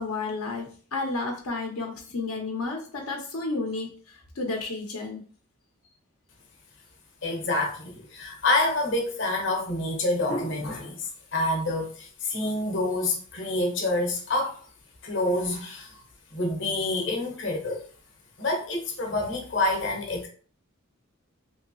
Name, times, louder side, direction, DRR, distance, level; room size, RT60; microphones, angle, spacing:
voice 1, 0.0-5.3, left 3 dB, 90° left, 0.8 m, -32 dB
voice 2, 7.2-14.6 15.0-16.0 16.3-17.8 18.4-20.3, left 2 dB, 60° left, 0.8 m, -27 dB
3.1 x 2.7 x 3.0 m
head